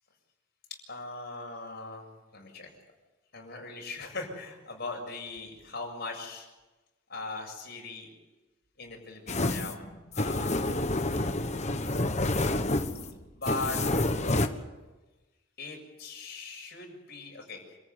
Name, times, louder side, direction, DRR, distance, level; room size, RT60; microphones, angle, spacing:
voice 1, 0.9-2.7 3.3-6.5 7.1-8.1 8.8-9.8 10.1-10.8 13.3-13.8 15.6-17.6, left 3 dB, 50° left, 1 dB, 7.3 m, -39 dB
sound 1, 9.3-14.5, left 2 dB, 35° left, 1.4 m, -28 dB
28.0 x 14.5 x 9.8 m, 1.1 s
head